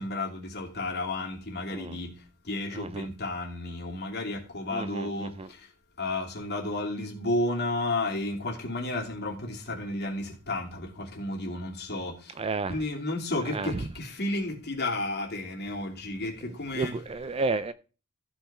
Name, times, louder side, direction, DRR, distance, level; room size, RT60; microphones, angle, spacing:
voice 1, 0.0-5.7 6.0-12.4 12.7-16.9, left 2 dB, 50° left, 2.8 m, -32 dB
voice 2, 2.7-3.1 4.7-5.5 12.4-12.8 13.5-13.8 16.5-17.7, right 3 dB, 25° right, 0.4 m, -32 dB
14.5 x 5.6 x 4.3 m
head